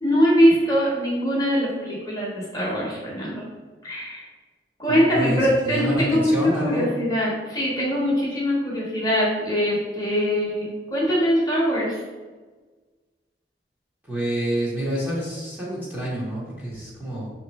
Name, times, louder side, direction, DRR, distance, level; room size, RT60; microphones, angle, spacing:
voice 1, 0.0-3.5 3.8-4.3 4.8-12.0, equal, 20° left, -5 dB, 1.6 m, -22 dB
voice 2, 4.9-6.9 14.1-17.3, right 1 dB, 10° right, -7 dB, 1.7 m, -27 dB
7.1 x 3.2 x 4.3 m, 1.3 s
head